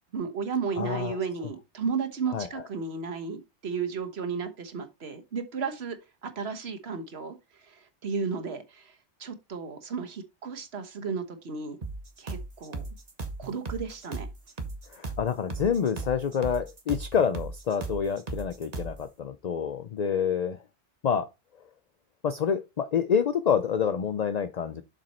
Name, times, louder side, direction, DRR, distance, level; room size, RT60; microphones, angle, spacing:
voice 1, 0.1-11.8 12.2-12.8 13.4-14.3, right 5 dB, 70° right, 1.5 m, -34 dB
voice 2, 0.8-1.2 2.3-2.5 14.9-20.6 21.0-21.3 22.2-24.8, left 7 dB, 50° left, 0.6 m, -27 dB
sound 1, 11.8-19.0, right 3 dB, 35° right, 1.3 m, -37 dB
7.4 x 5.2 x 4.2 m
omnidirectional pair, 1.1 m